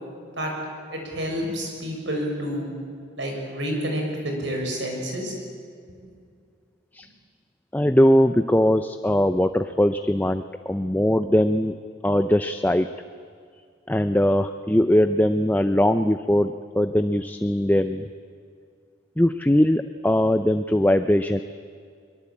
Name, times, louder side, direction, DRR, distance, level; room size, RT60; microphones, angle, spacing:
voice 1, 0.9-2.7 3.2-5.3, equal, 70° right, 1 dB, 6.8 m, -29 dB
voice 2, 7.7-11.7 12.0-12.9 13.9-18.0 19.2-21.4, left 1 dB, 10° left, 9 dB, 0.6 m, -20 dB
22.5 x 22.5 x 8.7 m, 2.2 s
head